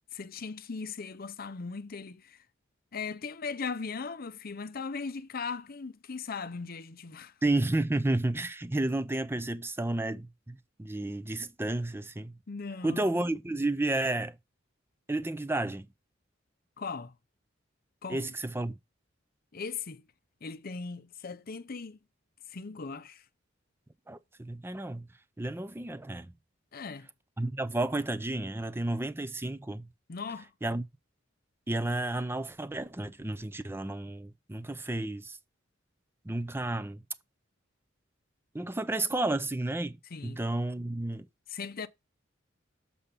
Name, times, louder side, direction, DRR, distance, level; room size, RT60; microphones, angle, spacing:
voice 1, 0.1-2.4 2.9-7.3 12.5-13.1 16.8-17.1 18.0-18.3 19.5-20.0 20.4-22.0 22.5-23.2 26.7-27.1 30.1-30.5 40.1-40.4 41.5-41.9, left 5 dB, 50° left, 0.6 m, -38 dB
voice 2, 7.4-12.4 12.8-14.4 15.1-15.9 18.1-18.7 24.1-25.1 25.4-26.3 27.4-29.9 30.6-30.8 31.7-35.4 36.2-37.0 38.5-40.0 40.2-41.3, right 2 dB, 10° right, 0.5 m, -31 dB
7.0 x 5.1 x 5.6 m
head